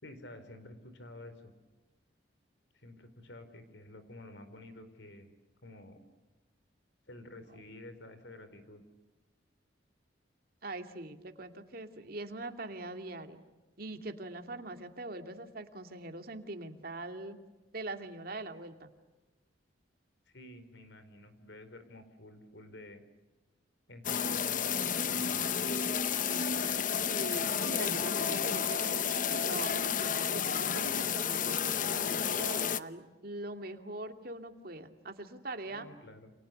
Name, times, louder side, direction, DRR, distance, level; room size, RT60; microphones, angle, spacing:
voice 1, 0.0-1.5 2.7-5.3 5.6-6.0 7.1-8.8 20.3-23.0 23.9-25.9 35.7-36.3, left 1 dB, 75° left, 10 dB, 4.6 m, -51 dB
voice 2, 10.6-13.4 13.8-17.4 17.7-18.9 27.0-35.9, right 2 dB, 55° right, 6 dB, 2.5 m, -42 dB
sound 1, 24.0-32.8, left 7 dB, 45° left, 0.9 m, -31 dB
29.5 x 28.5 x 6.8 m, 1.2 s
head